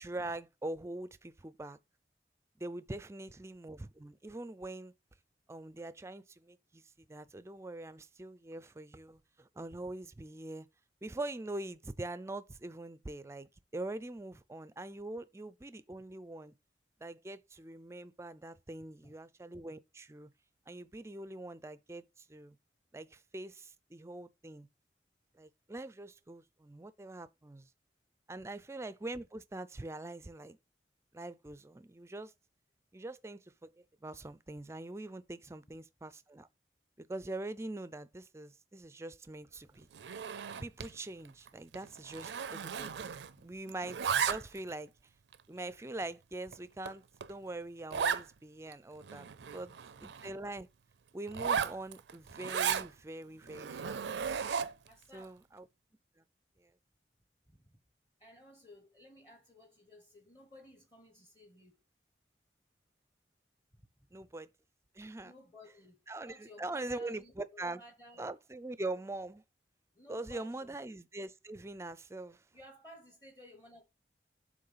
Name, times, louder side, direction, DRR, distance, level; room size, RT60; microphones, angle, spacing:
voice 1, 0.0-1.8 2.6-4.9 5.5-10.7 11.0-16.5 17.0-20.3 20.7-22.6 22.9-24.7 25.3-27.7 28.3-30.6 31.1-32.3 32.9-36.5 37.0-39.9 40.6-43.1 43.4-44.9 45.5-49.7 50.0-50.7 51.1-54.0 55.1-55.7 56.6-56.7 64.1-64.5 64.9-65.3 66.1-67.8 68.2-69.4 70.1-72.4, right 2 dB, 15° right, 0.4 m, -43 dB
Zipper (clothing), 39.9-41.0 41.3-41.5 41.7-43.4 43.7-44.7 45.3-45.4 46.0-46.1 46.5-46.6 46.9-47.0 47.2-47.3 47.9-48.3 48.7-48.8 49.0-50.3 51.3-52.9 53.5-54.9, right 7 dB, 85° right, 0.5 m, -35 dB
voice 2, 54.8-55.4 57.5-57.8 58.2-61.8 63.7-63.8 64.1-64.3 65.2-68.3 69.9-70.7 72.5-73.8, left 1 dB, 25° left, 1.0 m, -56 dB
7.7 x 3.1 x 5.6 m
head